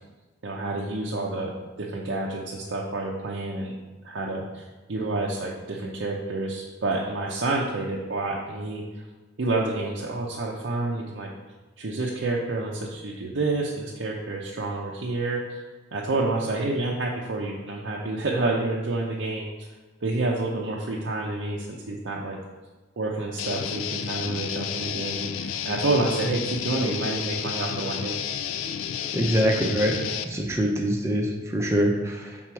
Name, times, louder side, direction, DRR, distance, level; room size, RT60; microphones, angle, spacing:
voice 1, 0.4-3.7 4.0-8.8 9.4-11.3 11.8-15.6 15.9-19.7 20.0-22.4 23.0-28.2, right 2 dB, 65° right, -2 dB, 0.6 m, -29 dB
Guitar, 23.4-30.2, left 8 dB, 85° left, 0.4 m, -31 dB
voice 2, 29.1-30.0 30.2-32.4, equal, 15° right, 0 dB, 0.6 m, -24 dB
6.0 x 3.9 x 4.5 m, 1.2 s
head